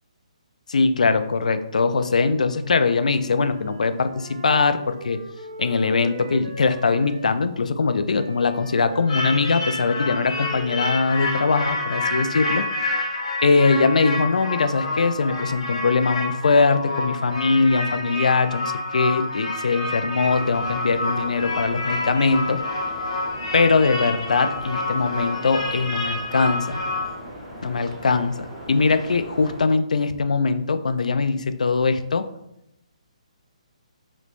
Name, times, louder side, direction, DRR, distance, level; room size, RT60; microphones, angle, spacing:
voice 1, 0.7-5.2 5.6-12.7 13.4-22.6 23.5-26.8 27.6-28.4 28.7-32.3, left 4 dB, 90° left, 11 dB, 0.3 m, -21 dB
Wind instrument woodwind instrument, 2.3-7.4 8.1-13.0, right 1 dB, 50° right, 0.5 m, -40 dB
sound 1, 9.1-27.1, left 2 dB, 50° left, 0.9 m, -28 dB
sound 2, 20.2-29.6, equal, ahead, 1.2 m, -39 dB
3.1 x 3.0 x 2.5 m, 0.82 s
hypercardioid pair, 165°, 4 cm